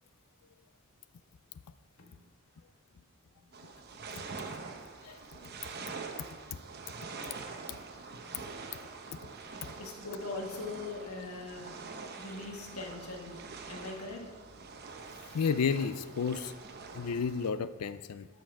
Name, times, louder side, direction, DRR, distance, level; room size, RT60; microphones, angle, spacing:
sound 1, 3.5-17.5, right 4 dB, 45° right, 0.9 m, -45 dB
voice 1, 5.3-5.6 9.5-11.8 12.2-14.4, left 3 dB, 70° left, 2 dB, 1.5 m, -42 dB
voice 2, 15.3-16.5 16.9-18.3, left 6 dB, 90° left, 13 dB, 0.4 m, -31 dB
12.5 x 6.4 x 4.7 m, 1.4 s
head